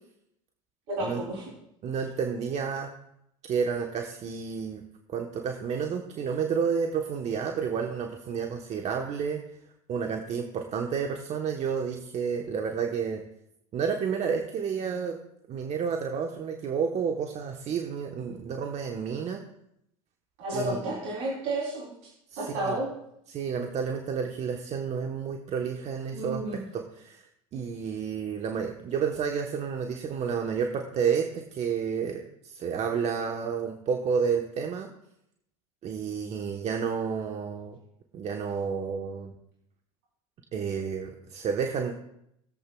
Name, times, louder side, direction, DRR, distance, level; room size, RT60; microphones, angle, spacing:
voice 1, 0.9-1.4 20.4-21.9 22.3-22.9 26.1-26.6, right 1 dB, 65° right, -4 dB, 3.3 m, -31 dB
voice 2, 1.8-2.9 3.5-4.8 5.1-9.4 9.9-13.2 13.7-15.2 15.5-19.4 20.5-20.9 22.3-22.8 23.3-26.4 26.7-34.9 35.8-37.8 38.1-39.3 40.5-41.9, right 6 dB, 40° right, 3 dB, 1.0 m, -30 dB
20.5 x 7.7 x 2.3 m, 0.78 s
hypercardioid pair, 85°, 18 cm